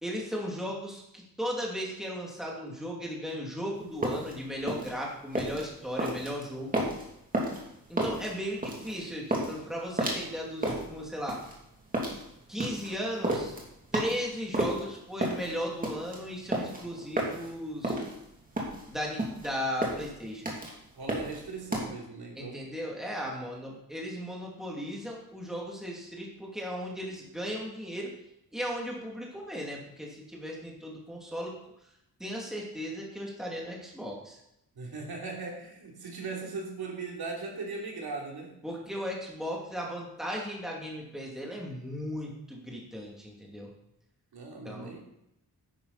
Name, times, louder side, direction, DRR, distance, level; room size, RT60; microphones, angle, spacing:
voice 1, 0.0-6.8 7.9-11.4 12.5-13.6 13.9-18.0 18.9-20.5 22.4-28.1 28.5-31.6 32.2-34.4 38.6-43.7 44.6-45.0, equal, ahead, -2 dB, 2.6 m, -36 dB
sound 1, 3.8-21.8, right 1 dB, 20° right, 2.7 m, -32 dB
voice 2, 21.0-22.6 34.7-38.6 44.3-45.0, right 4 dB, 75° right, -1 dB, 3.3 m, -38 dB
12.0 x 10.5 x 4.2 m, 0.81 s
wide cardioid pair, 165°, 38 cm